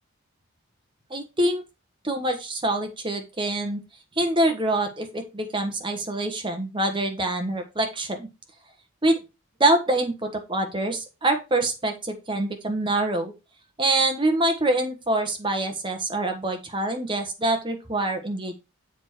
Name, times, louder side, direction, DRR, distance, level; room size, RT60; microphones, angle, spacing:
voice 1, 1.1-1.6 2.0-3.8 4.2-8.3 9.0-9.2 9.6-13.3 13.8-18.6, right 2 dB, 20° right, 5 dB, 1.3 m, -25 dB
7.2 x 4.9 x 4.4 m, 0.26 s
head